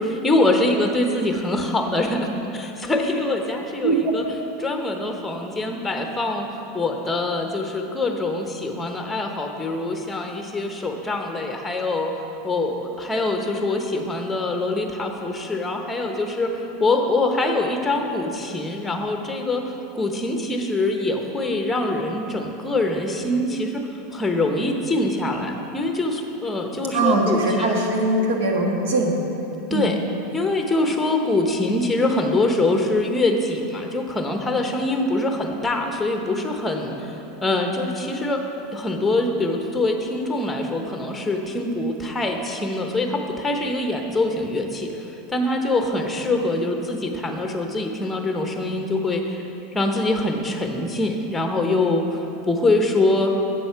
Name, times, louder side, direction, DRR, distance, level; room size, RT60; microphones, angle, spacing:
voice 1, 0.0-4.2 4.6-12.1 12.4-23.8 24.1-27.7 29.7-30.0 30.3-37.2 37.4-38.4 38.7-49.4 49.7-53.3, left 2 dB, 10° left, 4 dB, 1.0 m, -24 dB
voice 2, 26.9-29.2 29.7-29.9, right 2 dB, 70° right, 1 dB, 1.4 m, -21 dB
8.2 x 6.2 x 5.8 m, 2.9 s
hypercardioid pair, 110°, 0 cm